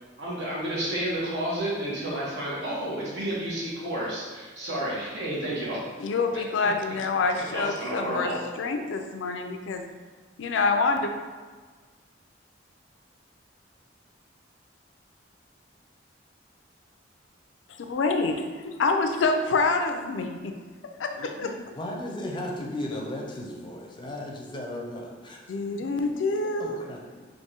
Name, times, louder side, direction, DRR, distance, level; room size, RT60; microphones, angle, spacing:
voice 1, 0.2-5.8 7.5-8.4, right 1 dB, 70° right, -6 dB, 1.3 m, -31 dB
voice 2, 6.0-8.3 8.6-9.8 10.4-11.1 17.8-18.3 18.8-20.5 21.0-21.6 25.5-26.8, left 3 dB, 85° left, 5 dB, 0.4 m, -26 dB
voice 3, 21.7-25.4 26.0-26.1 26.6-27.3, left 1 dB, 25° left, -1 dB, 0.5 m, -35 dB
4.6 x 2.6 x 2.9 m, 1.5 s
head